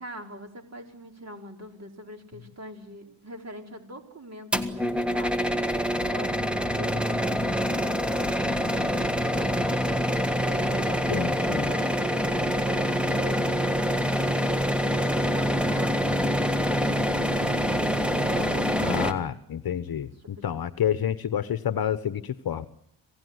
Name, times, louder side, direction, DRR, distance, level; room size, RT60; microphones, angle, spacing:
voice 1, 0.0-9.4 10.4-14.2 14.9-17.0 17.3-19.0 20.2-20.5, equal, 30° right, 4 dB, 4.6 m, -43 dB
sound 1, 4.5-19.1, equal, ahead, 1.6 m, -25 dB
voice 2, 11.1-11.7 18.8-22.7, left 9 dB, 45° left, 13 dB, 1.2 m, -29 dB
27.0 x 17.5 x 9.8 m, 0.73 s
cardioid pair, 105°, 49 cm